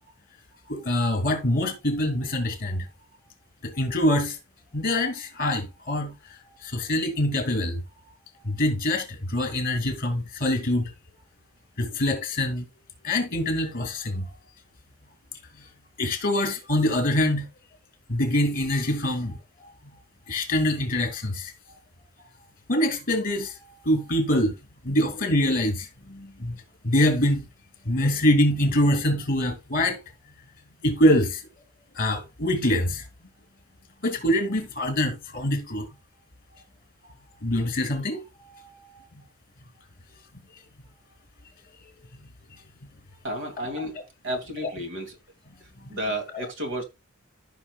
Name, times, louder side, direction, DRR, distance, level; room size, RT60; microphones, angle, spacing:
voice 1, 0.7-2.9 3.6-4.4 4.7-6.1 6.4-7.8 8.4-10.9 11.8-12.6 13.0-14.3 16.0-17.5 18.1-19.7 20.3-21.5 22.2-22.3 22.7-24.5 24.8-27.4 27.8-30.0 30.8-31.4 31.9-33.0 34.0-35.9 37.0-37.1 37.4-39.0 43.5-43.6 44.6-44.7 45.9-46.0 46.3-46.5, left 1 dB, 45° left, 2.7 m, -25 dB
voice 2, 43.2-44.0 44.2-45.2 45.9-46.8, right 1 dB, 60° right, 2.6 m, -31 dB
15.0 x 6.0 x 2.4 m
head